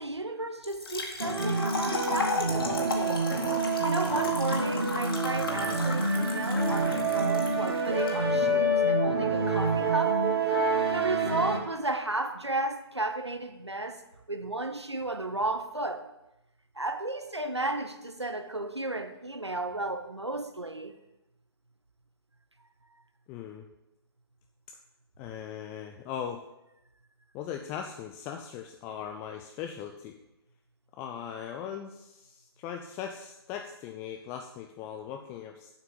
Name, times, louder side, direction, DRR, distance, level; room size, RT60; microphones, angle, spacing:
voice 1, 0.0-3.3 3.8-10.2 10.6-14.0 14.3-16.1 16.7-20.9, right 2 dB, 90° right, 1.1 m, -34 dB
Trickle dribble / Fill (with liquid), 0.6-8.1, left 3 dB, 60° left, 2.1 m, -35 dB
sound 1, 1.2-11.6, right 4 dB, 70° right, 1.7 m, -28 dB
Brass instrument, 5.5-10.9, left 2 dB, 5° right, 1.8 m, -30 dB
voice 2, 23.3-23.7 25.2-26.4 27.3-30.1 30.9-35.7, left 8 dB, 15° left, 0.4 m, -39 dB
7.8 x 5.9 x 7.8 m
figure-of-eight pair, 130°, 14 cm